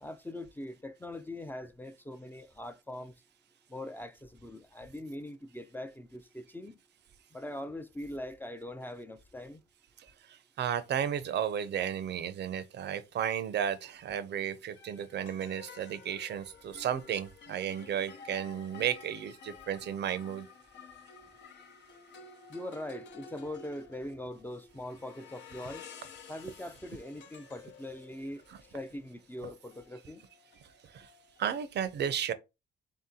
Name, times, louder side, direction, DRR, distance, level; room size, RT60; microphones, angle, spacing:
voice 1, 0.0-3.1 3.7-6.7 7.3-9.6 22.5-25.9 26.3-28.4 28.7-30.2, left 1 dB, 10° left, 0.4 m, -42 dB
voice 2, 10.6-20.5 28.5-28.6 30.9-31.1 31.4-32.3, right 9 dB, 60° right, 0.6 m, -33 dB
sound 1, 14.8-31.5, left 5 dB, 65° left, 0.8 m, -52 dB
3.6 x 2.8 x 3.7 m
cardioid pair, 90°, 20 cm